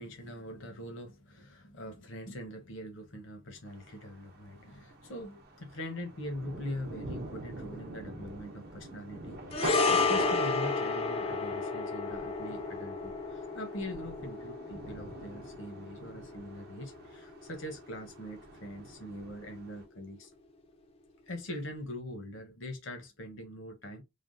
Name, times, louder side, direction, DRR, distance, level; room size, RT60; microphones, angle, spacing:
voice 1, 0.0-20.3 21.3-24.0, left 1 dB, 70° left, 0.7 m, -42 dB
Thunder, 3.7-19.8, right 2 dB, 50° right, 0.6 m, -44 dB
sound 1, 9.5-18.0 18.2-18.4, left 4 dB, 30° left, 0.3 m, -32 dB
3.2 x 2.1 x 2.4 m
head